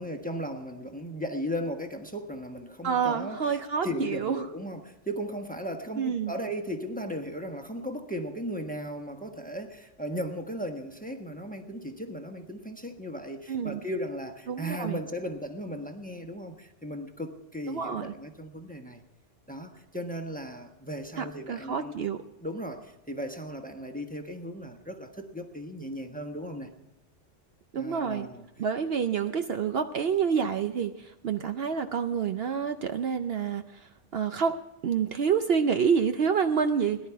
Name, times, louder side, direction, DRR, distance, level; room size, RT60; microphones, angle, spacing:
voice 1, 0.0-19.0 19.5-22.0 22.4-26.7 27.7-28.5, equal, 5° left, 4 dB, 1.1 m, -36 dB
voice 2, 2.8-4.4 6.0-6.3 13.5-13.8 14.5-15.0 17.7-18.1 21.2-22.2 27.7-28.3 28.6-33.6 34.1-34.6 34.8-37.0, right 6 dB, 60° right, 8 dB, 0.8 m, -28 dB
18.5 x 11.0 x 4.6 m, 0.98 s
omnidirectional pair, 1.2 m